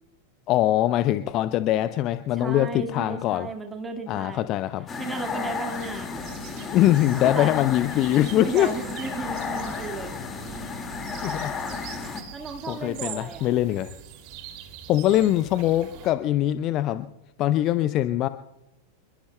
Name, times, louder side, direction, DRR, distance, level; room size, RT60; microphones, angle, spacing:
voice 1, 0.5-3.5 4.1-4.9 6.7-8.7 11.2-11.5 12.7-13.9 14.9-17.1 17.4-18.3, left 13 dB, 35° left, 13 dB, 0.6 m, -23 dB
voice 2, 2.3-4.6 5.0-6.6 7.4-7.6 8.3-10.2 12.3-13.5, right 3 dB, 15° right, 5 dB, 1.8 m, -35 dB
sound 1, 4.9-12.2, left 5 dB, 20° left, 2.1 m, -33 dB
sound 2, 5.7-16.1, right 9 dB, 45° right, 2.6 m, -43 dB
28.0 x 22.0 x 2.2 m, 0.95 s
figure-of-eight pair, 90°, 0 cm